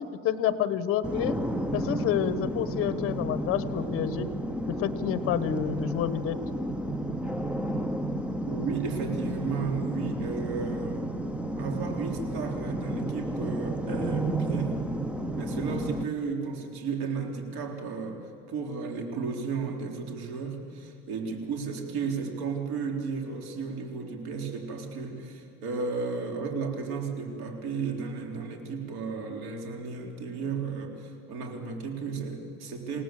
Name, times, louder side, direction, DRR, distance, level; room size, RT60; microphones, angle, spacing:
voice 1, 0.0-1.4 1.7-4.3 4.7-6.4, left 10 dB, 50° left, 13 dB, 1.2 m, -29 dB
sound 1, 1.0-16.0, right 1 dB, 5° right, 0.6 m, -32 dB
voice 2, 8.5-11.2 11.6-14.8 15.3-33.0, right 5 dB, 90° right, 2 dB, 3.8 m, -34 dB
28.0 x 18.0 x 7.7 m, 2.4 s
cardioid pair, 155°, 29 cm